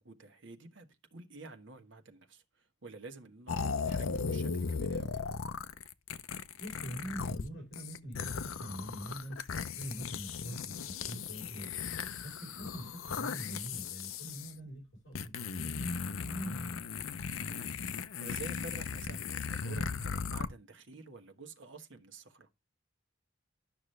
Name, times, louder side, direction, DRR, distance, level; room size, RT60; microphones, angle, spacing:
voice 1, 0.0-5.3 12.4-12.5 17.5-22.5, right 3 dB, 65° right, 1.4 m, -50 dB
sound 1, 3.5-7.4 7.7-14.5 15.1-20.5, left 5 dB, 85° left, 0.7 m, -37 dB
voice 2, 6.6-9.4 9.7-11.7 12.2-16.9, right 1 dB, 60° left, 4.4 m, -44 dB
11.5 x 6.1 x 3.2 m
head